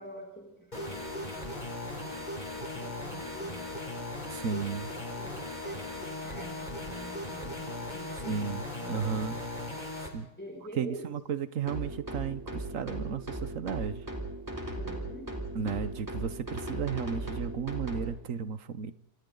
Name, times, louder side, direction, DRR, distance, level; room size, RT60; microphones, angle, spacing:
voice 1, 0.0-3.7 5.1-5.3 5.6-8.5 8.8-9.3 10.4-11.1 14.8-15.4, right 1 dB, 5° left, -2 dB, 5.9 m, -47 dB
sound 1, 0.7-10.1, left 2 dB, 25° left, 4.0 m, -38 dB
voice 2, 4.3-4.9 8.2-9.4 10.0-10.3 10.8-14.1 15.5-18.9, right 6 dB, 55° right, 14 dB, 1.3 m, -34 dB
sound 2, 11.7-18.1, right 1 dB, 10° right, 3.6 m, -38 dB
28.0 x 27.0 x 4.0 m, 0.77 s
omnidirectional pair, 1.7 m